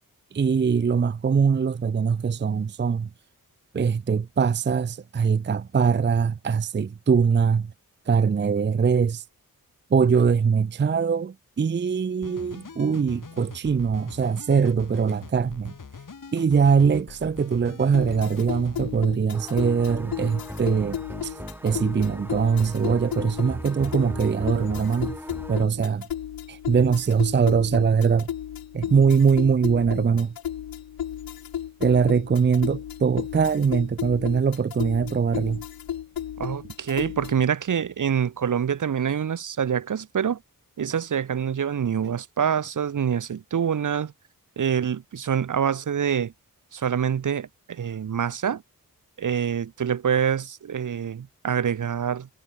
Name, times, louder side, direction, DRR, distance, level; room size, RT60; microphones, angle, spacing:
voice 1, 0.3-3.1 3.7-7.7 8.1-9.2 9.9-15.7 16.3-21.3 21.6-25.1 25.5-26.1 26.5-28.3 28.7-30.3 31.8-35.6, right 6 dB, 30° right, 0.5 m, -22 dB
sound 1, 12.2-19.1, left 5 dB, 60° left, 5.8 m, -43 dB
sound 2, 17.9-37.5, left 10 dB, 80° left, 0.7 m, -34 dB
sound 3, 19.3-25.6, right 1 dB, 5° right, 2.4 m, -38 dB
voice 2, 36.4-40.4 40.8-44.1 44.6-46.3 46.7-48.6 49.2-52.3, right 8 dB, 60° right, 0.8 m, -26 dB
wide cardioid pair, 100°, 35 cm